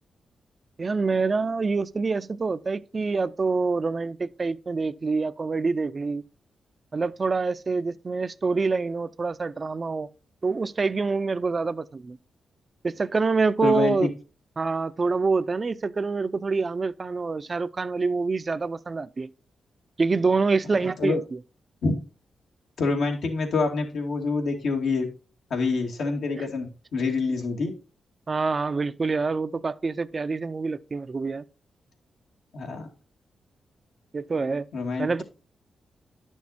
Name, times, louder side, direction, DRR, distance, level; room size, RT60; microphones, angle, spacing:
voice 1, 0.8-6.2 6.9-10.1 10.4-12.2 12.8-14.1 14.6-19.3 20.0-21.4 26.4-26.5 28.3-31.4 34.1-34.7 35.0-35.2, right 4 dB, 40° right, 0.5 m, -26 dB
voice 2, 13.6-14.1 21.0-21.2 21.8-21.9 22.8-25.1 25.5-27.7 32.5-32.9 34.7-35.2, left 4 dB, 80° left, 2.4 m, -26 dB
11.0 x 6.3 x 4.1 m
cardioid pair, 65°, 0 cm